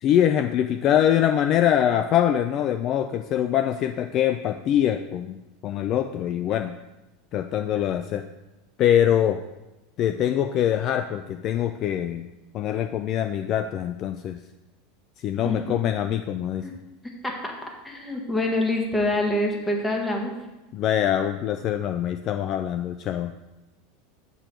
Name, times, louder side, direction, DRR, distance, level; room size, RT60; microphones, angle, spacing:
voice 1, 0.0-5.4 5.6-6.7 7.3-8.2 8.8-9.4 10.0-12.3 12.5-14.4 15.2-16.6 20.7-23.4, left 10 dB, 40° left, 9 dB, 0.3 m, -23 dB
voice 2, 17.8-20.3, left 1 dB, 10° left, 1 dB, 1.7 m, -25 dB
7.6 x 6.8 x 4.6 m, 1.1 s
supercardioid pair, 130°, 0 cm